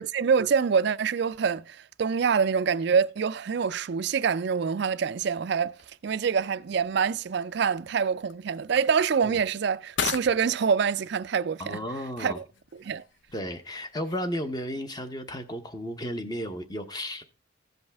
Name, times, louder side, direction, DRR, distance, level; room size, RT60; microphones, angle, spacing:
voice 1, 0.0-5.7 6.0-11.8 12.2-12.4 12.8-13.0, right 6 dB, 55° right, 0.4 m, -25 dB
sound 1, 5.6-14.8, left 7 dB, 65° left, 0.7 m, -41 dB
voice 2, 11.6-12.4 13.3-17.2, equal, 20° left, 0.8 m, -34 dB
15.5 x 5.3 x 3.4 m
head